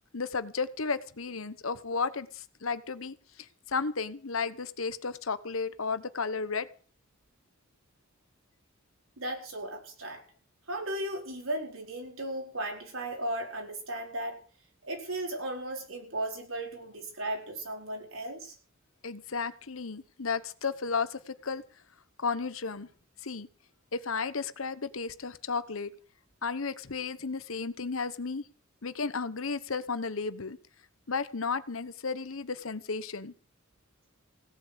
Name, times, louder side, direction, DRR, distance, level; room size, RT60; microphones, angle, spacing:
voice 1, 0.1-3.1 3.7-6.7 19.0-21.6 22.2-22.9 23.2-23.5 23.9-25.9 26.4-28.4 28.8-30.6 31.1-33.3, left 4 dB, 80° left, 13 dB, 1.1 m, -33 dB
voice 2, 9.2-10.2 10.7-14.4 14.8-18.5, right 1 dB, 80° right, 2 dB, 4.8 m, -36 dB
17.0 x 8.6 x 8.2 m, 0.42 s
head